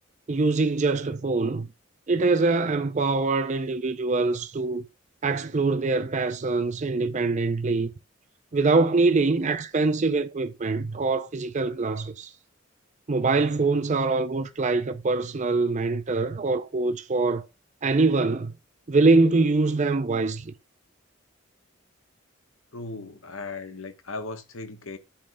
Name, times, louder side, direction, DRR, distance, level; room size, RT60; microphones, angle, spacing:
voice 1, 0.3-1.7 2.1-4.8 5.2-7.9 8.5-12.3 13.1-17.4 17.8-18.5 18.9-20.5, right 3 dB, 35° right, 0.5 m, -24 dB
voice 2, 22.7-25.0, left 3 dB, 75° left, 1.2 m, -37 dB
8.7 x 3.2 x 6.3 m
head